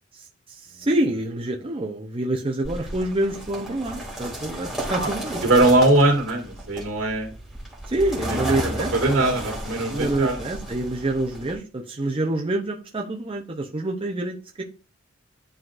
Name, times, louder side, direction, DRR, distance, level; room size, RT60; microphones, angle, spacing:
voice 1, 0.1-5.4 7.9-9.2 9.9-14.6, right 1 dB, 30° right, 0.7 m, -27 dB
sound 1, 2.6-11.5, right 1 dB, ahead, 2.2 m, -33 dB
voice 2, 5.4-7.3 8.3-10.4, right 2 dB, 75° right, 2.3 m, -21 dB
10.5 x 3.8 x 2.5 m
head